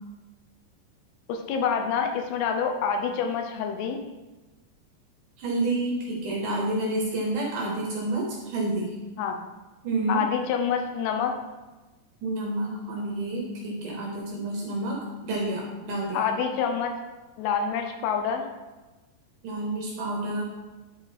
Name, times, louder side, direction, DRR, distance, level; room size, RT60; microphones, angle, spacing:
voice 1, 1.3-4.0 9.2-9.4 10.1-11.3 16.1-16.9 17.4-18.5, left 6 dB, 80° left, 4 dB, 2.4 m, -27 dB
voice 2, 5.4-8.9 9.8-10.2 12.2-16.3 19.4-20.4, right 2 dB, 80° right, -1 dB, 1.8 m, -29 dB
10.5 x 3.9 x 4.1 m, 1.2 s
omnidirectional pair, 5.0 m